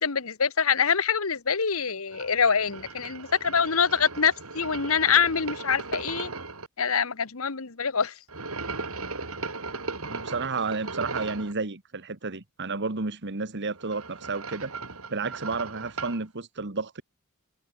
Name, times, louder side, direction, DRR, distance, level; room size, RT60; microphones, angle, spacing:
voice 1, 0.0-6.3 6.8-8.1, left 6 dB, 75° left, 1.4 m, -25 dB
sound 1, 2.1-6.7 8.3-11.5 13.6-16.2, right 3 dB, 80° right, 6.3 m, -37 dB
voice 2, 9.9-14.7 15.1-17.0, right 4 dB, 55° right, 1.7 m, -31 dB
head